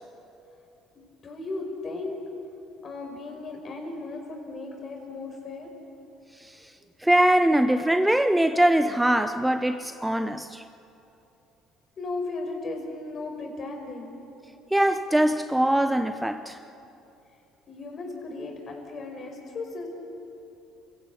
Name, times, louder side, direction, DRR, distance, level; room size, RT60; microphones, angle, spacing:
voice 1, 0.9-2.2 2.8-5.7 12.0-14.2 17.7-19.9, left 3 dB, 45° left, 5.6 m, -36 dB
voice 2, 6.4-6.7 7.0-10.6 14.7-16.6, right 1 dB, 5° right, 0.8 m, -22 dB
27.5 x 15.5 x 8.6 m
hypercardioid pair, 65°, 0 cm